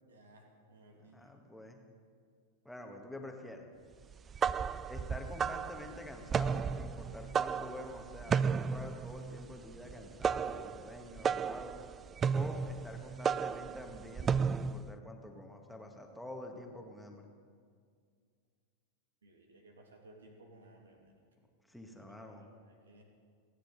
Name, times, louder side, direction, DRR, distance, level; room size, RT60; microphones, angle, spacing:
voice 1, 0.0-1.2 19.2-21.2 21.9-23.0, right 2 dB, 70° right, 2 dB, 2.4 m, -59 dB
voice 2, 1.0-1.8 2.7-3.7 4.9-11.8 12.3-17.3 21.7-22.4, left 1 dB, ahead, 2 dB, 1.8 m, -47 dB
sound 1, 4.1-14.9, right 6 dB, 20° right, 0.3 m, -34 dB
28.0 x 10.0 x 4.1 m, 2.1 s
figure-of-eight pair, 90°, 0 cm